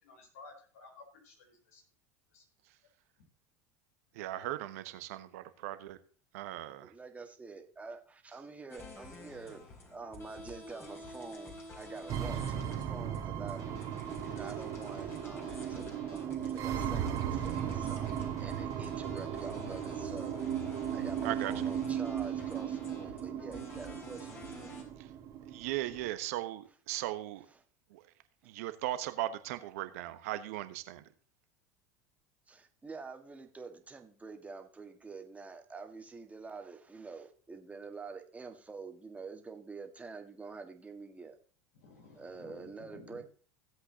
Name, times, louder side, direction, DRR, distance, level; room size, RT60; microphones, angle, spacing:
voice 1, 0.0-1.8 2.3-2.4 41.7-43.2, left 3 dB, 75° left, 4.1 m, -54 dB
voice 2, 4.1-6.0 6.3-6.9 21.2-21.5 25.0-25.1 25.5-27.5 27.9-28.0 28.4-31.0, right 15 dB, 70° right, 1.1 m, -38 dB
voice 3, 6.8-9.6 9.9-13.6 14.2-20.4 20.9-24.8 32.5-41.4 42.1-43.2, right 4 dB, 15° right, 1.7 m, -47 dB
sound 1, 8.7-24.8, left 2 dB, 30° left, 4.3 m, -49 dB
sound 2, 12.1-26.1, right 9 dB, 45° right, 1.8 m, -36 dB
16.5 x 8.0 x 2.9 m
hypercardioid pair, 80°, 8 cm